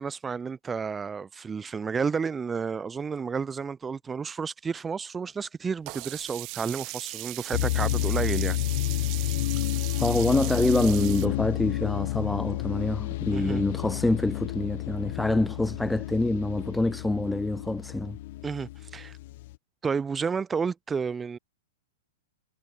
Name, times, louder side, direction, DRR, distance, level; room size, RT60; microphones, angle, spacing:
voice 1, 0.0-8.6 13.3-13.6 18.4-19.2 19.8-21.4, right 5 dB, 10° right, 2.1 m, -31 dB
Sink (filling or washing), 5.9-11.3, right 26 dB, 35° right, 0.4 m, -38 dB
sound 1, 7.5-19.5, left 18 dB, 50° left, 0.6 m, -30 dB
voice 2, 10.0-18.2, left 2 dB, 5° left, 0.8 m, -26 dB
hypercardioid pair, 150°, 0 cm